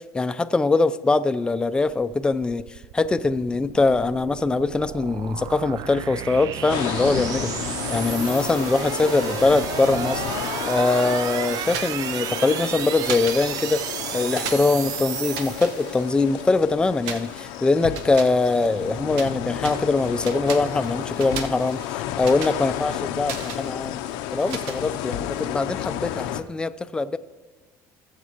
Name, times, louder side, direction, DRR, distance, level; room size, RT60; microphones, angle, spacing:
voice 1, 0.0-2.6 2.9-7.5 7.9-10.2 10.7-13.8 14.1-24.0 24.3-27.2, left 3 dB, 10° left, 11 dB, 0.4 m, -22 dB
sound 1, 1.9-16.3, right 12 dB, 60° right, 0.3 m, -33 dB
sound 2, 6.7-26.4, left 12 dB, 85° left, 0.5 m, -32 dB
sound 3, 11.6-12.7 13.0-14.0 14.3-16.4 17.0-19.3 19.6-25.4, right 6 dB, 85° right, 0.8 m, -37 dB
18.5 x 7.4 x 2.9 m, 1.3 s
cardioid pair, 115°, 7 cm